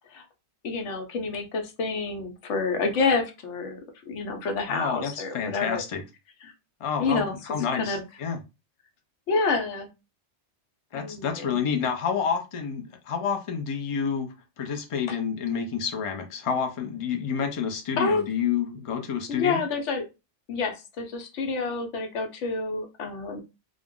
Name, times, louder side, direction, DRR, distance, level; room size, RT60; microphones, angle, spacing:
voice 1, 0.6-3.8 4.1-5.8 7.0-7.3 7.7-8.0 9.3-9.9 10.9-11.6 18.0-18.2 19.3-20.0 20.5-23.4, left 4 dB, 85° left, 1.0 m, -28 dB
voice 2, 4.7-6.0 6.8-8.4 10.9-19.6, left 6 dB, 50° left, 0.4 m, -29 dB
2.4 x 2.0 x 3.5 m
omnidirectional pair, 1.2 m